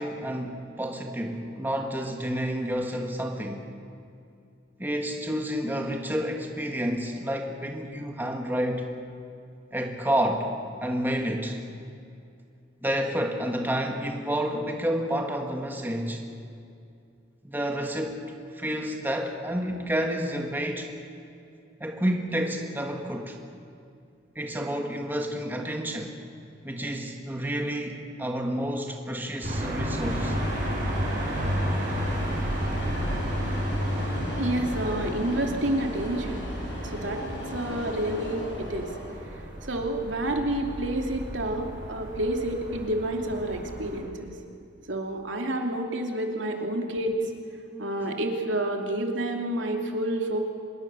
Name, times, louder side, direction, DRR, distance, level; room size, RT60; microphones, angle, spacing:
voice 1, 0.0-3.7 4.8-8.9 9.7-10.5 10.8-11.6 12.8-16.2 17.4-18.2 18.5-20.9 21.8-23.4 24.3-26.2 26.6-30.4 47.7-47.9, equal, 10° right, 2 dB, 1.7 m, -29 dB
sound 1, 29.4-44.0, equal, 45° right, 7.4 m, -32 dB
sound 2, 29.9-39.1, equal, 70° left, 7.0 m, -37 dB
voice 2, 34.4-36.4 36.8-37.2 37.5-38.9 39.6-44.3 44.9-47.2 47.8-50.4, right 1 dB, 80° right, 2 dB, 2.7 m, -29 dB
25.0 x 21.0 x 6.9 m, 2.5 s
head